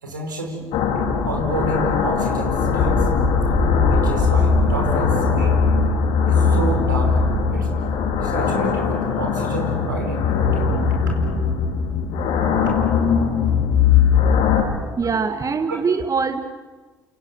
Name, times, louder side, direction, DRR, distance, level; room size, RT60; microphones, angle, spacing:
voice 1, 0.0-0.7 1.2-3.1 3.8-5.6 6.3-7.1 7.5-7.7 8.2-10.8 15.7-15.8, right 2 dB, 90° right, 2 dB, 5.0 m, -29 dB
sound 1, 0.7-14.6, left 5 dB, 65° left, 4.6 m, -19 dB
voice 2, 15.0-16.4, right 5 dB, 35° right, 8 dB, 1.9 m, -22 dB
30.0 x 28.0 x 6.9 m, 1.3 s
hypercardioid pair, 55°, 10 cm